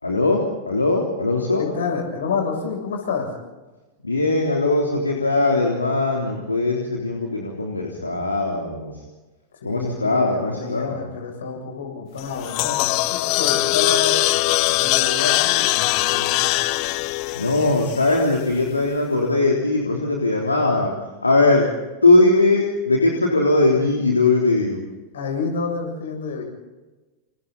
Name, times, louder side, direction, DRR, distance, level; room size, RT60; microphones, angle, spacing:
voice 1, 0.0-1.7 4.0-8.9 9.6-11.0 17.4-20.9 21.2-21.7 22.0-24.8, left 2 dB, 80° left, 0 dB, 3.5 m, -20 dB
voice 2, 1.6-3.3 9.6-16.5 25.1-26.4, left 5 dB, 65° left, 3 dB, 7.3 m, -29 dB
sound 1, 12.2-18.5, left 19 dB, 45° left, 0.7 m, -22 dB
29.0 x 29.0 x 4.2 m, 1.2 s
figure-of-eight pair, 90°, 0 cm